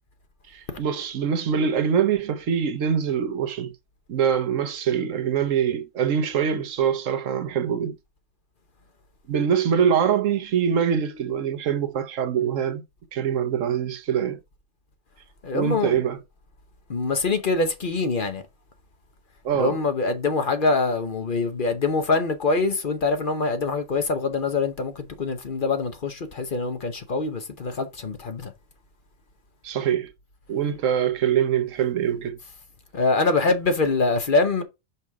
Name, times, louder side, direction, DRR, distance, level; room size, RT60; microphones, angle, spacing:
voice 1, 0.5-3.7 4.1-8.0 9.3-12.8 13.1-14.4 15.5-16.2 19.4-19.8 29.6-30.1 30.5-32.4, right 8 dB, 80° right, 1.2 m, -24 dB
voice 2, 15.4-16.0 16.9-18.4 19.5-28.5 32.9-34.6, left 3 dB, 45° left, 1.0 m, -24 dB
5.5 x 5.3 x 4.7 m
omnidirectional pair, 1.3 m